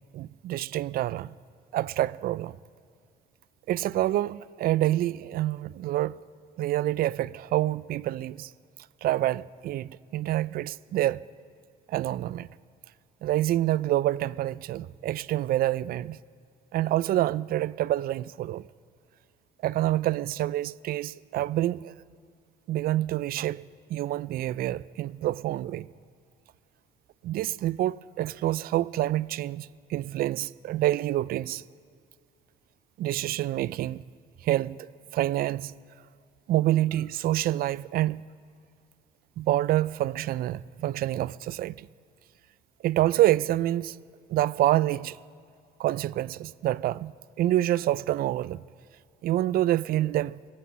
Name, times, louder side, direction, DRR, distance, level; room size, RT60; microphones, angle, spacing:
voice 1, 0.1-1.3 1.7-2.5 3.7-6.2 6.6-8.5 9.0-11.2 11.9-12.5 13.2-16.2 16.7-18.6 19.6-21.9 22.7-23.6 23.9-25.9 27.2-31.6 33.0-34.0 34.4-34.9 35.1-35.7 36.5-38.2 39.4-41.9 42.8-43.9 44.3-45.2 45.8-47.1 47.4-48.6 49.2-50.4, right 14 dB, 60° right, 0.4 m, -27 dB
15.0 x 14.5 x 5.7 m
cardioid pair, 110°, 17 cm